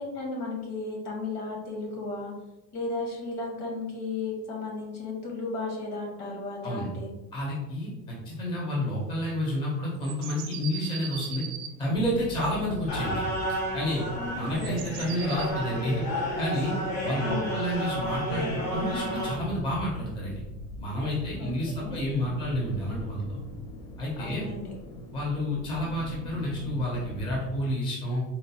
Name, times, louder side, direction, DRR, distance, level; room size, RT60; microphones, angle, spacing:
voice 1, 0.0-2.3 2.7-7.1 14.2-14.9 17.2-17.7 21.4-22.0 24.2-24.7, left 3 dB, 70° left, -1 dB, 1.2 m, -34 dB
voice 2, 7.3-11.4 11.8-13.3 13.7-14.0 14.4-16.0 16.4-16.7 17.0-20.4 20.8-23.4 24.0-24.5 25.1-28.2, left 1 dB, 15° left, -4 dB, 0.4 m, -30 dB
sound 1, 10.0-11.7 13.2-15.5, right 8 dB, 70° right, 0.5 m, -39 dB
sound 2, 11.9-27.5, equal, 55° left, 0.7 m, -41 dB
sound 3, 12.9-19.3, equal, 90° left, 1.3 m, -32 dB
4.0 x 2.0 x 2.6 m, 1.1 s
cardioid pair, 180°, 40 cm